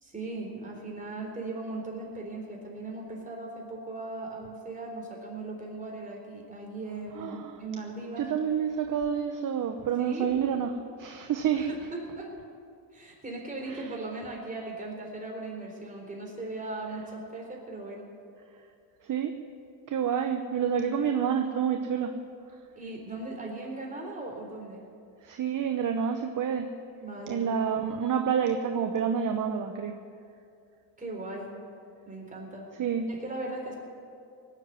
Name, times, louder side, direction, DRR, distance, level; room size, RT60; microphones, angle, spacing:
voice 1, 0.0-8.3 10.0-10.3 11.5-12.3 12.9-18.1 22.8-24.8 27.0-27.6 31.0-31.5 32.1-32.7 33.1-33.7, right 2 dB, 15° right, -1 dB, 4.0 m, -38 dB
voice 2, 7.1-7.6 8.2-11.7 13.7-14.0 19.0-19.4 19.9-22.2 25.2-26.7 27.3-30.0 32.8-33.1, right 7 dB, 40° right, 6 dB, 0.9 m, -28 dB
18.5 x 7.6 x 9.4 m, 2.4 s
cardioid pair, 100°, 47 cm